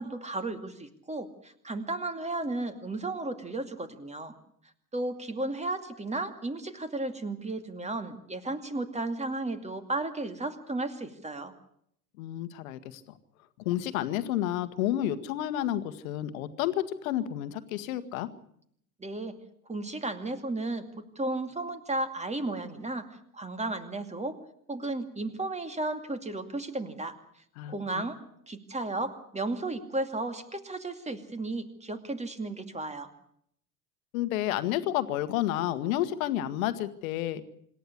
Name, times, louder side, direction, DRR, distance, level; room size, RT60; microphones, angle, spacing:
voice 1, 0.0-4.3 4.9-11.5 19.0-19.4 19.7-23.1 23.3-24.4 24.7-27.2 27.7-28.2 28.5-33.1, right 2 dB, 15° right, 9 dB, 2.4 m, -34 dB
voice 2, 12.2-13.0 13.6-18.3 27.6-27.7 34.1-37.4, left 13 dB, 65° left, 12 dB, 1.6 m, -30 dB
26.5 x 12.0 x 9.9 m, 0.70 s
figure-of-eight pair, 60°, 45 cm